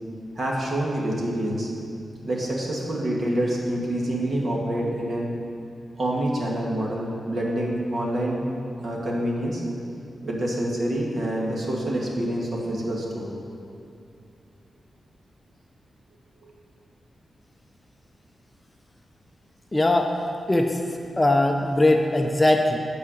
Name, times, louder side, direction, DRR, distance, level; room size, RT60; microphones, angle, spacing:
voice 1, 0.4-1.7 2.2-5.3 6.0-8.4 8.8-9.6 10.2-13.3 16.4-16.5, right 1 dB, 45° right, -3 dB, 2.1 m, -27 dB
voice 2, 19.7-20.1 20.5-20.8 21.2-22.8, left 1 dB, 15° left, 3 dB, 0.6 m, -20 dB
11.0 x 4.9 x 8.1 m, 2.5 s
wide cardioid pair, 110°, 0 cm